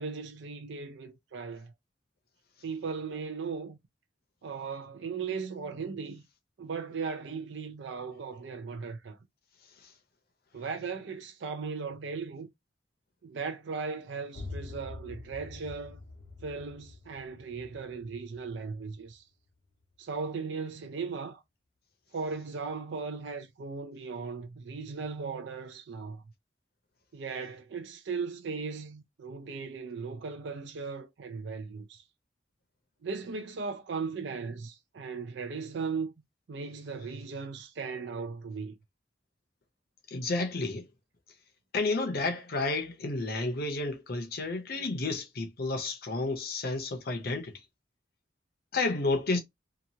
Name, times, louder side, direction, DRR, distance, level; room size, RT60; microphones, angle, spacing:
voice 1, 0.0-1.7 2.6-3.8 4.4-6.2 6.6-9.2 10.5-12.5 13.2-16.0 16.4-19.2 20.0-21.4 22.1-26.2 27.1-32.0 33.0-36.1 36.5-38.8, right 5 dB, 75° right, 0.4 m, -37 dB
sound 1, 14.3-19.9, left 2 dB, 75° left, 1.0 m, -46 dB
voice 2, 40.1-40.9 41.7-47.5 48.7-49.4, left 3 dB, 55° left, 0.7 m, -31 dB
2.9 x 2.3 x 2.7 m
head